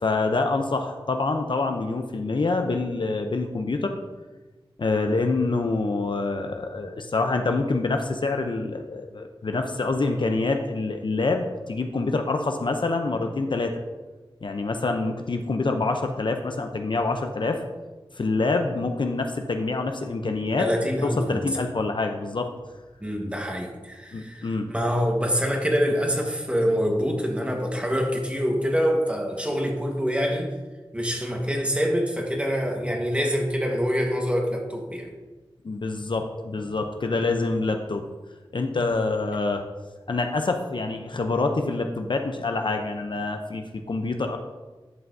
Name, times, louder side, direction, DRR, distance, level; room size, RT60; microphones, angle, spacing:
voice 1, 0.0-4.0 4.8-13.7 14.4-17.6 18.2-20.7 21.0-22.5 24.1-24.7 35.6-38.0 38.5-39.6 40.1-44.4, left 3 dB, 55° left, 5 dB, 0.6 m, -26 dB
voice 2, 20.6-21.5 23.0-30.5 30.9-35.1, equal, 10° right, 1 dB, 1.4 m, -25 dB
11.0 x 5.7 x 2.7 m, 1.2 s
wide cardioid pair, 60°, 10 cm